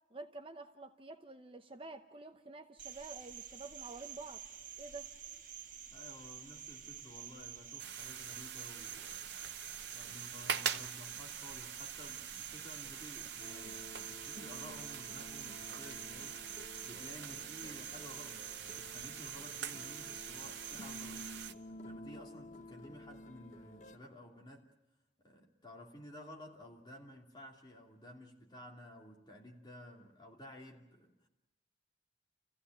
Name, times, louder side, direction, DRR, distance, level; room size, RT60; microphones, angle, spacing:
voice 1, 0.1-4.4 4.8-5.1, right 3 dB, 30° right, 0.8 m, -49 dB
Cricket, 2.8-21.5, right 9 dB, 45° right, 1.4 m, -49 dB
voice 2, 5.9-9.4 9.9-16.4 16.8-21.3 21.7-24.7 25.2-31.3, left 1 dB, 25° left, 2.6 m, -53 dB
sound 1, 7.8-21.5, right 8 dB, 65° right, 0.8 m, -44 dB
sound 2, 13.4-24.0, left 1 dB, 40° left, 0.8 m, -52 dB
29.0 x 15.5 x 9.2 m
head